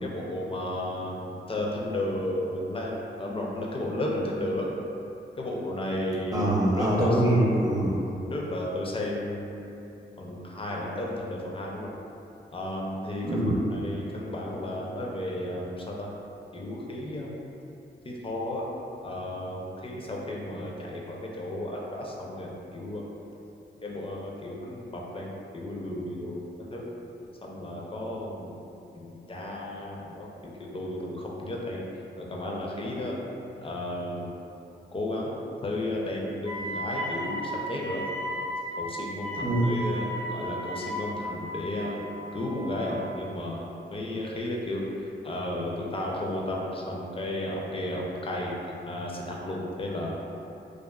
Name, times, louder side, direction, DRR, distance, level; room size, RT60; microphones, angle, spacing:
voice 1, 0.0-4.7 5.4-6.5 6.8-7.1 8.3-9.8 10.2-11.9 12.5-13.3 13.7-16.1 16.5-17.3 18.0-18.6 19.0-23.1 23.8-26.4 26.7-26.9 27.4-28.7 28.9-31.8 32.2-33.2 33.6-34.3 34.9-35.3 35.6-38.0 38.8-42.1 42.3-50.2, left 1 dB, 25° left, -3 dB, 0.4 m, -33 dB
voice 2, 6.3-8.0 13.2-13.7 39.4-39.8, right 1 dB, 15° right, -5 dB, 0.6 m, -24 dB
Wind instrument woodwind instrument, 36.4-42.9, equal, 80° left, 0.6 m, -35 dB
2.4 x 2.3 x 2.3 m, 2.8 s
cardioid pair, 50°, 20 cm